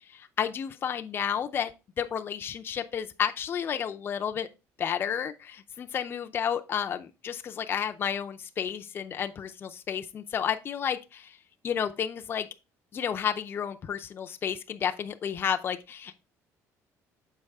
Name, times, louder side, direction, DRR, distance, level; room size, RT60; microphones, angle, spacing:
voice 1, 0.1-1.7 2.0-4.5 4.8-11.4 11.6-12.5 12.9-16.2, left 8 dB, 35° left, 0.5 m, -31 dB
6.6 x 4.8 x 3.5 m
cardioid pair, 135°, 6 cm